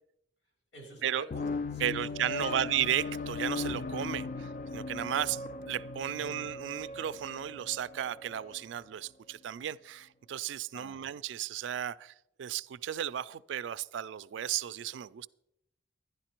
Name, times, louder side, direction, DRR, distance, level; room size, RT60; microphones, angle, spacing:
voice 1, 0.7-2.6 6.2-6.3 10.7-11.1, right 1 dB, 70° left, 4.5 m, -49 dB
sound 1, 1.3-8.6, left 3 dB, 45° left, 0.3 m, -38 dB
voice 2, 1.8-12.1 12.4-15.3, right 10 dB, 80° right, 0.3 m, -34 dB
11.0 x 10.5 x 4.4 m
head